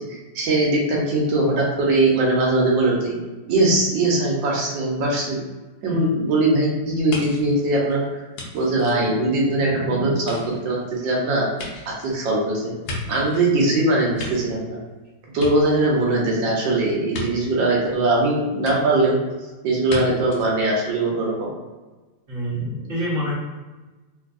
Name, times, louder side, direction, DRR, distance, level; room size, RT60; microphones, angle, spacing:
voice 1, 0.0-3.1 3.5-5.4 5.8-8.0 8.5-11.5 11.9-12.7 13.1-14.8 15.3-19.2 19.6-21.5, right 2 dB, 85° right, -3 dB, 1.6 m, -21 dB
sound 1, 7.1-9.7 10.2-13.5 13.9-15.0 15.3-16.2 17.1-17.3 18.6-18.7 19.9-20.0 20.3-20.5, left 2 dB, 80° left, 1.4 m, -35 dB
voice 2, 22.3-23.3, equal, 45° right, -9 dB, 1.5 m, -27 dB
3.7 x 2.6 x 2.4 m, 1.2 s
omnidirectional pair, 2.0 m